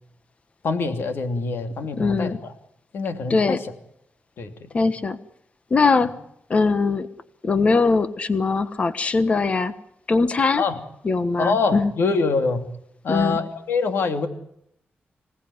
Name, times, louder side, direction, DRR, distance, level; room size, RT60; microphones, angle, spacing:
voice 1, 0.6-2.5 2.9-3.7 4.4-4.9 10.6-10.8 11.4-12.7 13.0-14.3, left 4 dB, 75° left, 7 dB, 2.9 m, -25 dB
voice 2, 2.0-2.4 3.3-3.6 4.7-5.2 5.7-6.1 6.5-7.1 7.4-9.7 10.1-10.7 11.0-11.9 13.1-13.4, left 4 dB, 35° left, 12 dB, 1.3 m, -21 dB
26.5 x 18.0 x 9.6 m, 0.75 s
wide cardioid pair, 170°, 4 cm